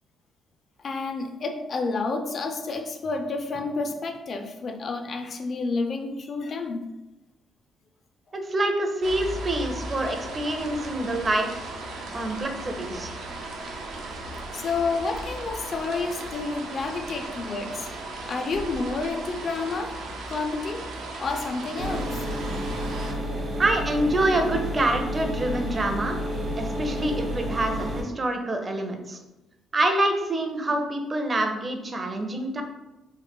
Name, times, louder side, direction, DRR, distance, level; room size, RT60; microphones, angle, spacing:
voice 1, 0.8-6.9 14.5-17.9 18.3-20.0 20.3-22.3, left 3 dB, 50° left, 6 dB, 0.4 m, -30 dB
voice 2, 8.3-11.5 12.1-13.1 23.6-26.2 26.6-29.2 29.7-32.6, right 1 dB, 30° right, 4 dB, 0.5 m, -26 dB
sound 1, 9.0-23.1, right 2 dB, 85° right, 0.5 m, -36 dB
sound 2, 21.8-28.0, equal, 60° right, 0.9 m, -30 dB
3.1 x 2.1 x 3.4 m, 0.99 s
cardioid pair, 90°, 0 cm